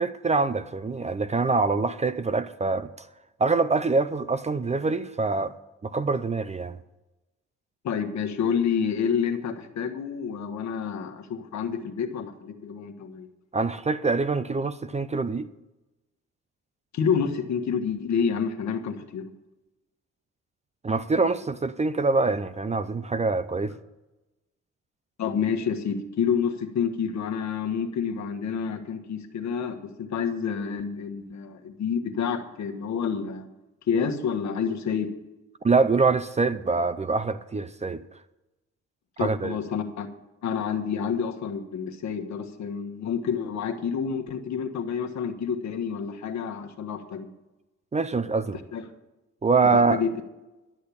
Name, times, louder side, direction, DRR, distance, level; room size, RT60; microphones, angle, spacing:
voice 1, 0.0-3.1 3.4-5.5 5.8-6.8 13.5-15.5 20.8-23.7 35.6-38.0 39.2-39.6 47.9-48.6 49.4-50.0, right 4 dB, 20° right, 0.5 m, -24 dB
voice 2, 7.8-13.3 16.9-19.3 25.2-33.5 33.9-35.1 39.2-40.1 40.4-47.3 48.7-48.9 49.9-50.1, left 6 dB, 65° left, 1.5 m, -28 dB
12.0 x 6.5 x 8.5 m
cardioid pair, 90°, 30 cm